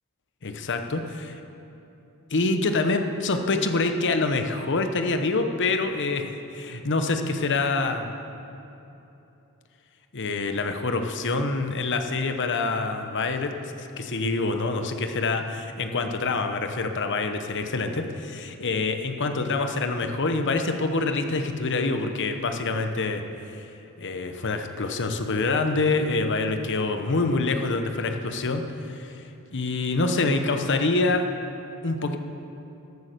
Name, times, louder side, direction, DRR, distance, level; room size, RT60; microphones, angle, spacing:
voice 1, 0.4-1.4 2.3-6.2 6.5-8.1 10.1-13.5 13.8-23.2 23.5-23.7 24.0-29.2 29.5-31.2 31.8-32.2, left 3 dB, 55° left, 6 dB, 0.9 m, -26 dB
14.0 x 8.7 x 6.8 m, 3.0 s
head